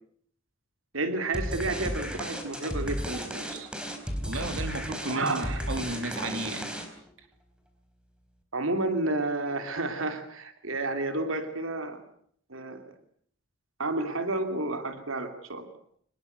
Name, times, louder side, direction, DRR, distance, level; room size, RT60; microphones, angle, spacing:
voice 1, 0.9-3.7 5.1-5.8 8.5-12.0 12.5-12.8 13.8-15.7, right 2 dB, 90° right, 2.8 m, -31 dB
sound 1, 1.3-7.1, equal, 5° right, 4.3 m, -34 dB
voice 2, 4.3-6.7, right 2 dB, 70° right, 2.8 m, -34 dB
25.5 x 21.0 x 8.1 m
head